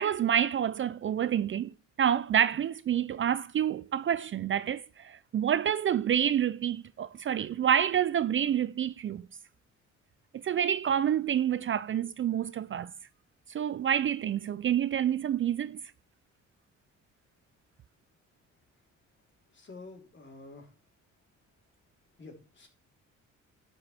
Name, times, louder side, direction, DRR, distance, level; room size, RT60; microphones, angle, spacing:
voice 1, 0.0-9.3 10.4-12.9 13.5-15.8, right 9 dB, 40° right, 0.5 m, -28 dB
voice 2, 19.5-20.7 22.2-22.7, left 3 dB, 40° left, 3.9 m, -48 dB
11.0 x 7.7 x 3.5 m
cardioid pair, 90°, 30 cm